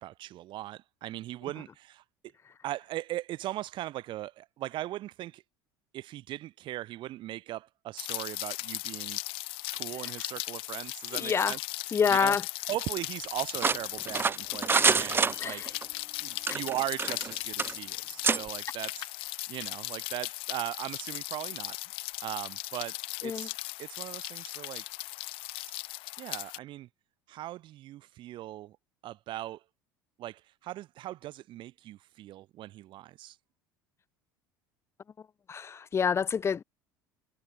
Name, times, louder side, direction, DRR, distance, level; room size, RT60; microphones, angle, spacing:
voice 1, 0.0-2.0 2.6-5.4 5.9-9.2 9.7-11.6 12.1-12.4 12.7-15.7 16.2-21.8 22.2-23.5 23.8-24.8 26.2-26.9 27.3-28.8 29.0-29.6 30.2-33.4, right 14 dB, 45° right, 0.9 m, -39 dB
Rain, 8.0-26.6, left 21 dB, 55° left, 1.2 m, -38 dB
voice 2, 11.1-11.5 11.9-12.4 15.4-15.7 23.2-23.5 35.5-36.6, left 6 dB, 25° left, 0.5 m, -27 dB
sound 1, 13.6-15.8 16.4-17.3 17.6-17.7 18.2-18.4, right 5 dB, 20° right, 0.7 m, -26 dB
figure-of-eight pair, 65°, 11 cm